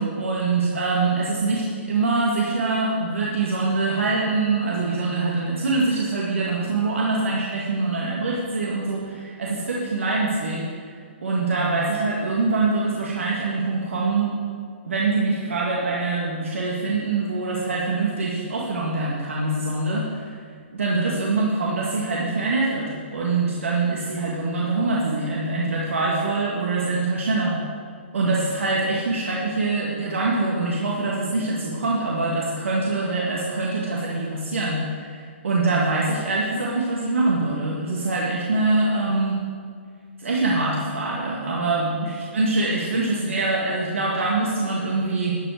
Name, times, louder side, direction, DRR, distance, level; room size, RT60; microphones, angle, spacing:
voice 1, 0.0-14.3 14.8-20.4 20.7-27.6 28.1-39.4 40.2-45.4, right 3 dB, 90° right, -4 dB, 2.0 m, -24 dB
12.5 x 5.8 x 7.7 m, 2.1 s
hypercardioid pair, 150°, 7 cm